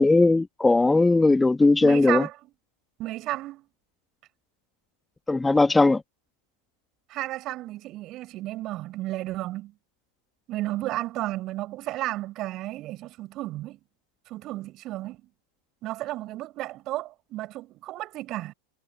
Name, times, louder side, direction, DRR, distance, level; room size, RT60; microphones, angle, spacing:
voice 1, 0.0-2.2 5.3-6.0, left 3 dB, 10° left, 1.9 m, -19 dB
voice 2, 1.8-2.4 3.0-3.7 7.1-9.7 10.5-13.8 14.3-15.3 15.8-18.5, right 16 dB, 35° right, 5.4 m, -33 dB
figure-of-eight pair, 90°, 0 cm